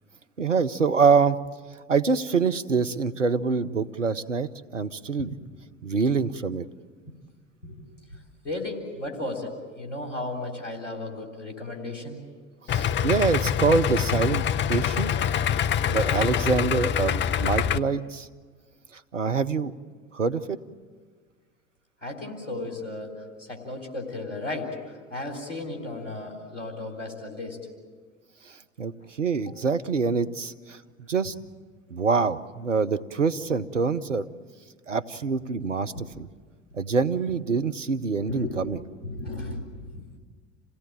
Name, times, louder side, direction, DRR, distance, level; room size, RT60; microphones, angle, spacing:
voice 1, 0.4-1.4 1.9-5.4 5.8-6.7 12.7-14.4 14.7-15.1 15.9-18.3 19.1-19.7 20.1-20.6 28.8-30.8 31.1-31.3 31.9-34.3 34.9-36.3 36.7-38.8, right 5 dB, 90° right, 12 dB, 0.7 m, -25 dB
voice 2, 8.4-12.2 22.0-23.1 23.4-27.6 29.4-29.5 35.9-36.0 38.3-38.6 39.0-39.6 39.9-40.0, left 2 dB, 85° left, 1 dB, 3.8 m, -34 dB
Idling, 12.7-17.8, left 9 dB, 30° left, 0.7 m, -25 dB
28.0 x 17.0 x 8.8 m, 1.5 s
figure-of-eight pair, 65°, 36 cm